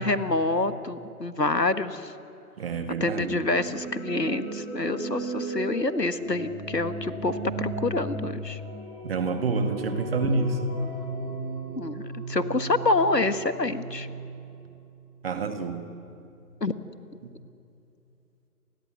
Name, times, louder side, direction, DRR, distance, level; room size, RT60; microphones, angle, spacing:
voice 1, 0.0-2.1 3.0-8.6 10.2-10.3 11.8-14.1 16.6-16.7, left 2 dB, 85° left, 11 dB, 1.7 m, -27 dB
voice 2, 2.6-3.4 9.0-10.7 15.2-15.8 17.2-17.3, right 3 dB, 35° right, 7 dB, 2.1 m, -28 dB
sound 1, 3.0-14.9, right 2 dB, 5° right, 6.1 m, -36 dB
29.0 x 20.5 x 8.1 m, 2.6 s
figure-of-eight pair, 140°, 48 cm